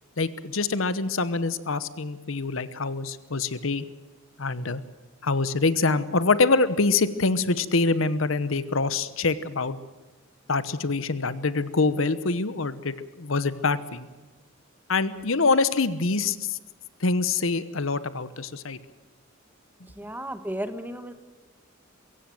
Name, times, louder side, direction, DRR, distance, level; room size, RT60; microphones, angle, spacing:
voice 1, 0.2-3.8 4.4-4.8 5.2-9.8 10.5-14.1 14.9-16.6 17.0-18.8, left 3 dB, 75° left, 15 dB, 1.1 m, -25 dB
voice 2, 19.9-21.1, right 1 dB, 10° right, 10 dB, 1.3 m, -34 dB
23.0 x 16.5 x 7.8 m, 1.2 s
head